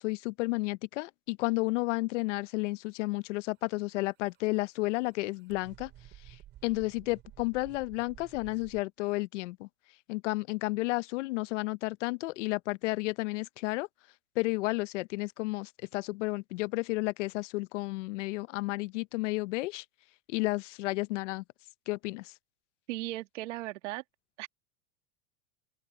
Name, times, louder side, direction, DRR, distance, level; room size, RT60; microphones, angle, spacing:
voice 1, 0.0-5.9 6.3-6.4 6.6-9.7 10.1-13.9 14.4-19.8 20.3-21.4 21.9-22.3, left 22 dB, 75° left, 0.8 m, -32 dB
sound 1, 3.7-8.8, right 14 dB, 30° right, 4.2 m, -53 dB
voice 2, 22.9-24.0 24.4-24.5, right 17 dB, 80° right, 2.3 m, -37 dB
open air
supercardioid pair, 170°, 36 cm